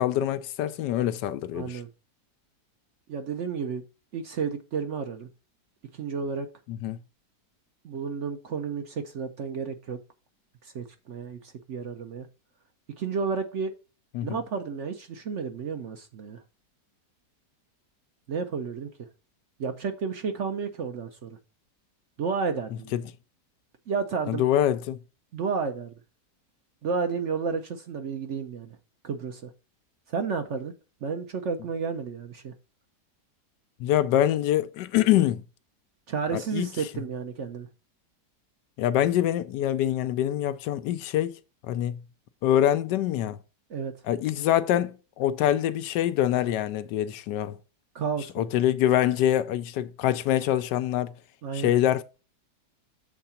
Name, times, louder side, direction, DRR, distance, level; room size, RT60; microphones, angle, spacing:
voice 1, 0.0-1.8 6.7-7.0 14.1-14.4 22.9-23.0 24.3-25.0 33.8-35.4 36.3-36.7 38.8-41.4 41.6-42.0 42.4-43.4 44.0-47.6 48.4-51.1 51.5-52.0, left 12 dB, 90° left, 1.2 m, -25 dB
voice 2, 1.5-1.9 3.1-3.8 4.1-5.3 5.9-6.5 7.8-10.0 10.6-12.3 13.0-13.7 14.2-16.4 18.3-18.9 19.6-21.3 22.2-23.0 23.9-24.4 25.3-25.9 26.8-28.8 29.0-29.5 30.1-30.7 31.0-32.5 36.1-37.7 43.7-43.9 47.9-48.5 51.4-51.7, right 5 dB, 60° right, 0.8 m, -31 dB
7.3 x 3.8 x 5.6 m
omnidirectional pair, 1.8 m